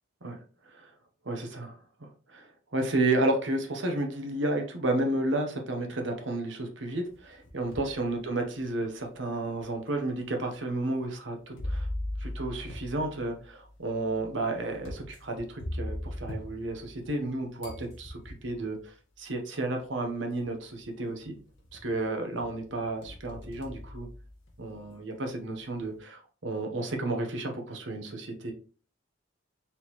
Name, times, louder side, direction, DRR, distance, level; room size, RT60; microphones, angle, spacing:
voice 1, 1.2-1.7 2.3-11.9 12.2-21.3 21.7-24.1 24.6-28.5, right 2 dB, 65° right, 3 dB, 1.0 m, -32 dB
sound 1, 7.1-8.0 8.6-8.7 9.6-9.7 11.6-17.3 17.6-18.6 19.8-19.9 20.4-20.8 21.2-22.0 22.4-24.7, left 1 dB, 70° left, 1.4 m, -39 dB
4.2 x 3.8 x 3.1 m, 0.40 s
head